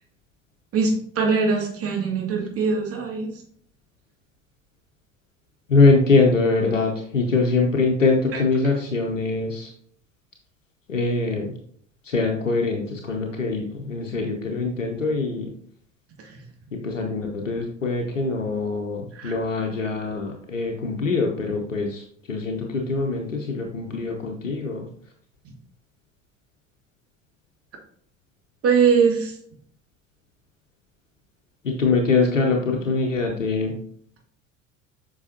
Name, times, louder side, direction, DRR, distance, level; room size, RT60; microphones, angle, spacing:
voice 1, 0.7-3.3 8.3-8.4 19.1-19.3 28.6-29.3, right 5 dB, 40° right, 0 dB, 2.4 m, -21 dB
voice 2, 5.7-9.7 10.9-11.5 12.0-15.5 16.7-24.8 31.6-33.8, left 3 dB, 85° left, 1 dB, 0.9 m, -23 dB
8.1 x 5.6 x 2.8 m, 0.62 s
figure-of-eight pair, 65°, 37 cm